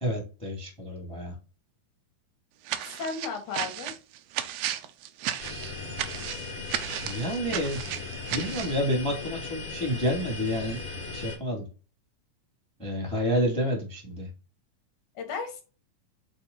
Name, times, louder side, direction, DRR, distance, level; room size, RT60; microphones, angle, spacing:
voice 1, 0.0-1.3 7.0-7.9 8.3-10.8 11.1-11.7 12.8-14.3, equal, ahead, 1 dB, 1.8 m, -29 dB
sound 1, 2.7-8.8, right 11 dB, 75° right, 1.9 m, -34 dB
voice 2, 2.8-3.9 15.2-15.6, left 5 dB, 70° left, 4 dB, 3.1 m, -34 dB
sound 2, 5.4-11.4, left 3 dB, 45° left, 3.4 m, -38 dB
8.1 x 3.6 x 4.0 m, 0.34 s
omnidirectional pair, 3.6 m